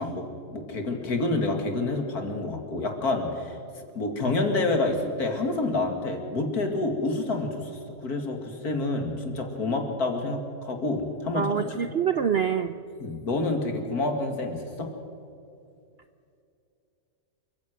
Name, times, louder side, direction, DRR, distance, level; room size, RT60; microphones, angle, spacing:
voice 1, 0.0-3.6 3.9-11.7 13.0-14.9, left 2 dB, 70° left, 4 dB, 2.7 m, -28 dB
voice 2, 11.3-12.8, right 8 dB, 60° right, 10 dB, 0.7 m, -25 dB
28.0 x 16.0 x 6.2 m, 2.5 s
omnidirectional pair, 1.7 m